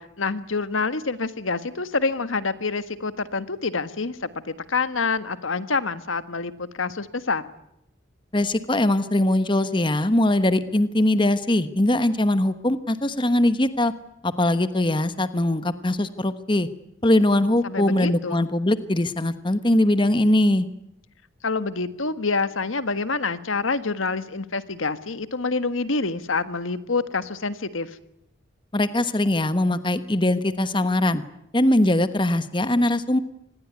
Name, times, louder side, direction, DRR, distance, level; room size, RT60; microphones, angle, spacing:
voice 1, 0.0-4.4 4.7-7.4 17.6-18.5 21.4-28.0, left 4 dB, 90° left, 12 dB, 1.5 m, -27 dB
voice 2, 8.3-13.9 14.2-16.7 17.0-20.7 28.7-31.2 31.5-33.2, left 1 dB, 25° left, 12 dB, 1.2 m, -21 dB
26.0 x 20.5 x 9.6 m, 0.80 s
head